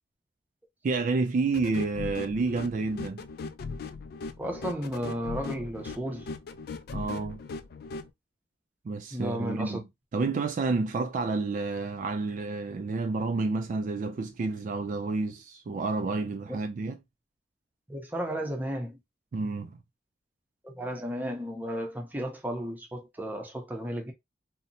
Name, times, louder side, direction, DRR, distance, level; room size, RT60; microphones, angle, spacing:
voice 1, 0.8-3.2 6.9-7.4 8.9-9.8 10.1-17.0 19.3-19.8, right 3 dB, 45° right, 0.3 m, -29 dB
sound 1, 1.5-8.1, left 4 dB, 55° left, 0.3 m, -39 dB
voice 2, 4.4-6.3 9.1-9.8 17.9-19.0 20.6-24.1, equal, 10° right, 0.6 m, -34 dB
2.8 x 2.1 x 2.6 m
head